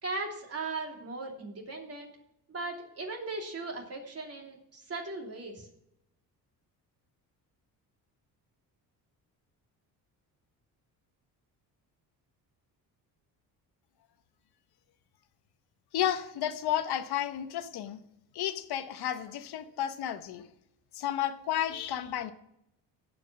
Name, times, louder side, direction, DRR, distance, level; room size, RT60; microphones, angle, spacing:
voice 1, 0.0-2.1 2.5-5.7, right 3 dB, 35° right, 0 dB, 3.0 m, -38 dB
voice 2, 15.9-18.0 18.3-20.4 20.9-22.3, left 11 dB, 70° left, 10 dB, 1.2 m, -32 dB
15.5 x 5.4 x 6.1 m, 0.80 s
cardioid pair, 105°, 40 cm